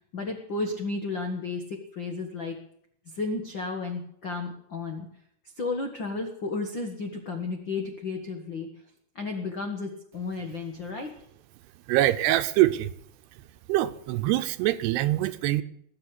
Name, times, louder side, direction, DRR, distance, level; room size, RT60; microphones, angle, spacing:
voice 1, 0.1-2.6 3.0-5.1 5.6-8.7 9.1-11.1, left 3 dB, 85° left, 4 dB, 1.0 m, -33 dB
voice 2, 11.9-12.9 13.7-15.6, right 15 dB, 80° right, 11 dB, 2.8 m, -24 dB
20.5 x 6.8 x 9.8 m, 0.70 s
omnidirectional pair, 4.8 m